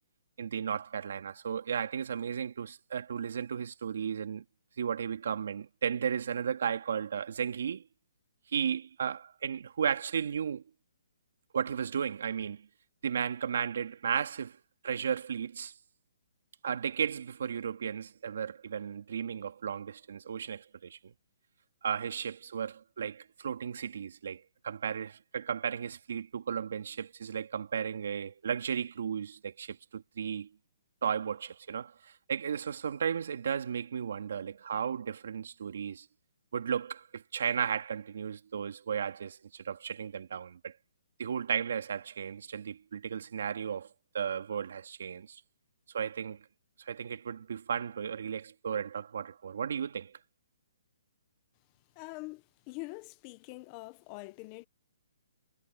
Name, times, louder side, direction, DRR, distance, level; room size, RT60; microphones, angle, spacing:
voice 1, 0.4-4.4 4.8-7.8 8.5-10.6 11.5-12.7 13.0-14.6 14.8-15.7 16.6-21.1 21.8-30.5 31.0-36.1 36.5-40.7 41.2-43.9 44.1-45.4 45.9-46.4 46.8-50.2, right 7 dB, 60° right, 2.4 m, -34 dB
voice 2, 52.0-54.7, left 24 dB, 25° left, 1.1 m, -44 dB
hypercardioid pair, 165°, 0 cm